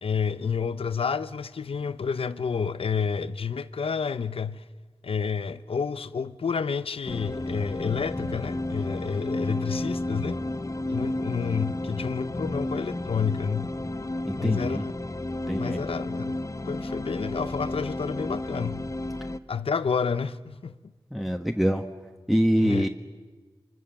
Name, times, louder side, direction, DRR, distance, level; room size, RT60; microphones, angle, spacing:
voice 1, 0.0-4.6 5.0-10.4 10.9-13.7 14.4-14.9 15.6-16.4 16.7-18.8 19.5-20.7 22.6-22.9, left 6 dB, 90° left, 0.7 m, -29 dB
sound 1, 7.1-19.4, left 2 dB, 35° left, 1.0 m, -32 dB
voice 2, 14.3-14.8 15.5-15.8 21.1-21.8 22.3-22.9, equal, ahead, 1.5 m, -24 dB
25.0 x 24.5 x 7.1 m
cardioid pair, 40°, 9 cm